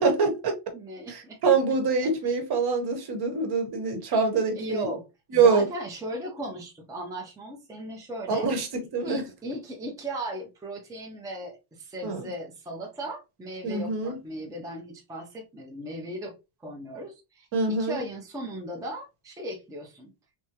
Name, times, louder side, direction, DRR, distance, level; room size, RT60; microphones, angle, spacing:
voice 1, 0.0-0.5 1.1-4.9 5.3-5.7 8.3-8.7 8.9-9.2 12.0-12.3 13.6-14.2 17.5-18.0, right 4 dB, 50° right, 1.1 m, -24 dB
voice 2, 0.7-1.4 2.0-2.1 4.6-5.1 5.3-8.5 9.0-16.3 16.6-20.1, right 1 dB, 5° right, 0.6 m, -37 dB
3.4 x 2.7 x 2.8 m
cardioid pair, 160°, 50 cm